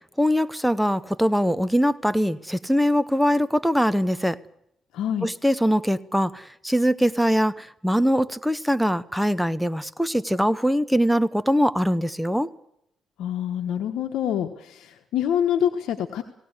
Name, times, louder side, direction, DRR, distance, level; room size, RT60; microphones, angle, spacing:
voice 1, 0.2-4.4 5.2-12.5, equal, ahead, 0.9 m, -22 dB
voice 2, 4.9-5.3 13.2-16.2, left 9 dB, 80° left, 1.3 m, -26 dB
19.0 x 17.0 x 9.6 m
cardioid pair, 90°, 0 cm